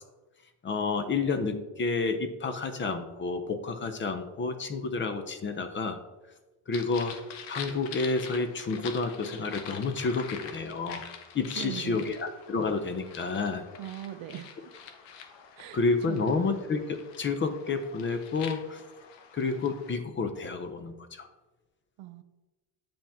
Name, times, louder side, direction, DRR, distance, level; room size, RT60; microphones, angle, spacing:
voice 1, 0.6-6.0 6.7-7.1 7.5-11.0 11.3-13.6 15.7-18.8 19.3-21.3, left 4 dB, 25° left, 8 dB, 0.6 m, -30 dB
sound 1, 6.7-19.9, left 7 dB, 70° left, 1.0 m, -45 dB
voice 2, 11.6-12.1 13.8-14.7 15.6-15.8 16.1-16.3 22.0-22.2, right 13 dB, 85° right, 11 dB, 0.7 m, -40 dB
8.7 x 5.2 x 3.5 m, 1.1 s
cardioid pair, 145°, 44 cm